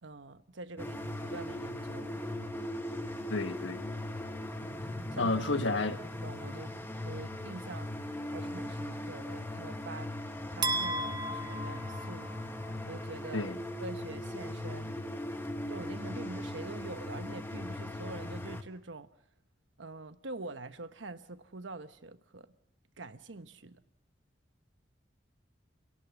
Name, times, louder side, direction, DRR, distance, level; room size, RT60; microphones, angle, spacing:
voice 1, 0.0-2.2 5.1-5.3 5.9-6.0 6.2-6.7 7.0-7.9 8.3-10.2 10.5-12.4 12.8-13.5 13.8-15.0 15.7-19.1 19.8-22.5 23.0-23.8, right 3 dB, 85° right, 1.1 m, -45 dB
sound 1, 0.8-18.6, left 1 dB, 10° left, 1.3 m, -39 dB
voice 2, 3.3-3.9 5.2-6.0 13.3-13.6, left 2 dB, 85° left, 1.5 m, -31 dB
sound 2, 10.6-12.8, right 2 dB, 25° right, 1.1 m, -35 dB
29.0 x 17.5 x 7.0 m
head